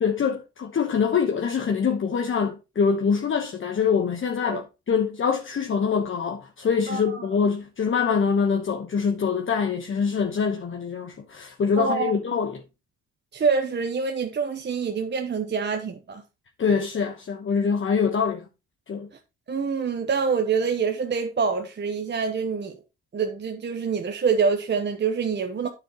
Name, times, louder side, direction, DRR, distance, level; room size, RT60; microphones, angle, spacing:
voice 1, 0.0-12.6 16.6-18.5 18.9-19.1, left 6 dB, 40° left, 1.1 m, -24 dB
voice 2, 6.9-7.3 11.8-12.1 13.3-16.2 19.5-22.8 23.1-25.7, right 5 dB, 35° right, 1.0 m, -26 dB
9.2 x 7.4 x 3.0 m
cardioid pair, 90°, 30 cm